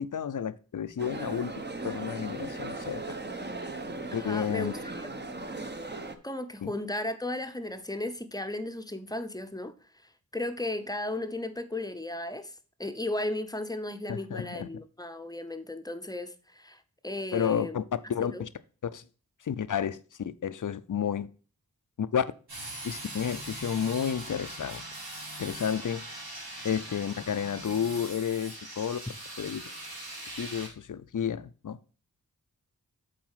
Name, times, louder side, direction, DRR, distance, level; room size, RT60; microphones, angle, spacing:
voice 1, 0.0-3.2 4.1-4.7 6.6-6.7 14.1-14.8 17.3-18.5 18.8-19.0 19.4-21.3 22.0-22.3 22.8-24.8 25.4-26.1 26.6-29.0 29.4-29.6 30.3-31.8, left 8 dB, 55° left, 0.6 m, -31 dB
sound 1, 1.0-6.1, right 2 dB, 30° right, 1.0 m, -37 dB
voice 2, 4.1-5.1 6.2-9.7 10.0-17.8 18.2-18.4, left 1 dB, 10° left, 0.8 m, -35 dB
sound 2, 22.5-30.7, right 1 dB, 90° right, 3.1 m, -41 dB
7.7 x 4.2 x 5.6 m
wide cardioid pair, 55°, 36 cm